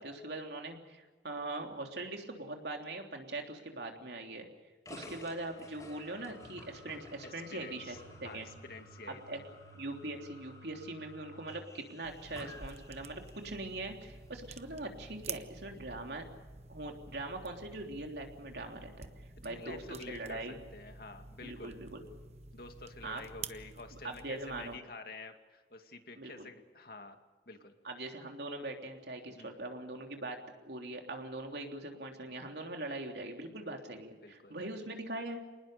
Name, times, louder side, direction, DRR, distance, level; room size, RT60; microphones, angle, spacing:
voice 1, 0.0-4.5 4.9-8.0 8.2-8.5 9.1-9.4 9.7-16.2 16.7-19.1 19.4-20.6 21.4-22.0 23.0-23.2 24.0-24.8 26.2-26.5 27.8-30.4 30.6-35.4, right 2 dB, 65° right, 3 dB, 3.3 m, -41 dB
sound 1, 4.8-13.6, left 1 dB, 20° left, 5.2 m, -53 dB
voice 2, 7.2-9.4 15.9-16.0 19.4-20.4 20.7-21.8 22.5-27.2 27.5-27.7 29.2-29.5 34.2-34.6, left 3 dB, 55° left, 5 dB, 2.3 m, -49 dB
sound 2, 12.0-24.8, right 5 dB, 35° right, 0.9 m, -50 dB
27.0 x 20.0 x 6.8 m, 1.3 s
head